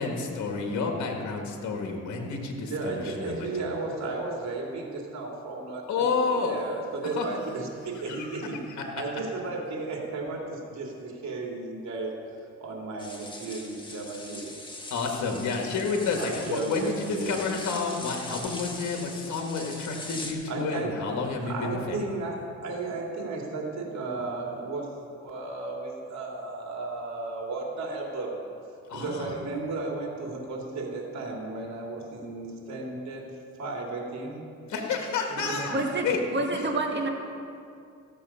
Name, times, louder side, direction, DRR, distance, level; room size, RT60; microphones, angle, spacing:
voice 1, 0.0-3.5 5.9-6.6 7.0-7.3 7.9-8.6 14.9-22.0 28.9-29.4 34.7-35.8 36.0-36.2 36.5-36.6, left 4 dB, 70° left, 1.8 m, -30 dB
voice 2, 2.7-6.1 6.3-8.6 9.0-12.1 12.6-14.5 16.2-17.4 20.5-20.9 21.4-28.4 28.9-33.2 33.6-34.4 35.3-35.7, right 3 dB, 65° right, 2.9 m, -34 dB
sound 1, 13.0-20.3, left 2 dB, 15° left, 1.7 m, -41 dB
voice 3, 35.7-37.1, right 2 dB, 35° right, 1.9 m, -28 dB
15.5 x 7.5 x 5.6 m
cardioid pair, 90°, 30 cm